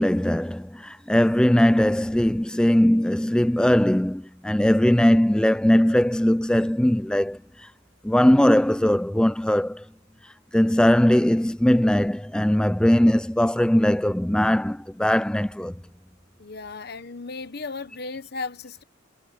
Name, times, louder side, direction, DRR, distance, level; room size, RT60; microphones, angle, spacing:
voice 1, 0.0-7.4 8.0-9.8 10.5-15.7, left 1 dB, 5° left, 0.3 m, -20 dB
voice 2, 16.4-18.8, left 3 dB, 55° left, 1.2 m, -35 dB
head